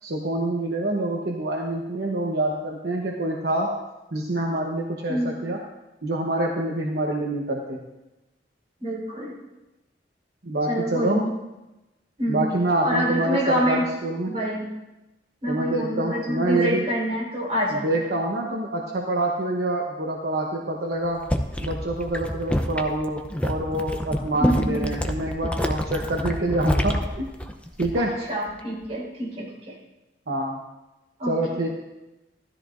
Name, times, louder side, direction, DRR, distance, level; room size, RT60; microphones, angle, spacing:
voice 1, 0.0-3.7 4.1-5.6 6.0-7.8 10.4-11.2 12.3-14.3 15.5-16.8 17.7-21.2 21.6-27.3 27.8-28.1 30.3-30.6 31.3-31.7, right 1 dB, 60° right, -1 dB, 1.1 m, -26 dB
voice 2, 8.8-9.3 10.7-11.3 12.2-12.5 12.8-13.9 14.2-14.7 15.4-18.0 24.4-24.8 28.0-29.8 31.2-31.6, equal, 35° right, -4 dB, 4.4 m, -26 dB
sound 1, 21.0-28.2 28.5-28.9, equal, 5° left, 0.7 m, -28 dB
15.5 x 13.0 x 2.6 m, 1.0 s
head